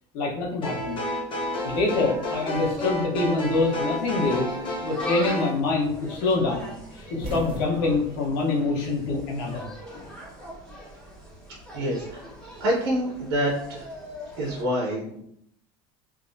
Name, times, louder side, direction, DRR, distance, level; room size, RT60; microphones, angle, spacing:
voice 1, 0.1-1.1 1.6-4.5 4.8-9.7, left 3 dB, 80° left, -2 dB, 1.1 m, -25 dB
sound 1, 0.6-5.5, left 1 dB, 40° left, 1.1 m, -31 dB
Insect, 0.9-14.6, left 1 dB, 5° left, 1.3 m, -42 dB
sound 2, 6.9-9.4 9.7-10.8 11.9-13.4, right 1 dB, 40° right, 1.1 m, -40 dB
voice 2, 11.7-12.3 12.6-13.8 14.4-15.2, equal, 85° right, -4 dB, 1.1 m, -26 dB
3.5 x 2.8 x 2.7 m, 0.71 s
cardioid pair, 135°, 13 cm